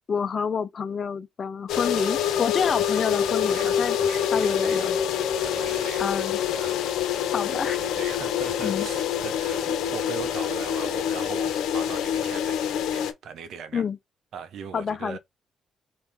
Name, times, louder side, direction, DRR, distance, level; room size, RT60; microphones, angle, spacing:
voice 1, 0.1-4.0 4.3-5.0 6.0-6.4 7.3-7.8 8.6-8.9 13.7-14.0 14.7-15.2, left 6 dB, 45° left, 0.5 m, -28 dB
sound 1, 1.7-13.1, left 9 dB, 85° left, 0.7 m, -26 dB
voice 2, 3.5-4.9 5.4-6.1 6.5-6.8 7.6-12.6 12.9-13.8 14.3-15.2, right 7 dB, 70° right, 0.9 m, -39 dB
4.3 x 2.9 x 3.5 m
cardioid pair, 90°, 0 cm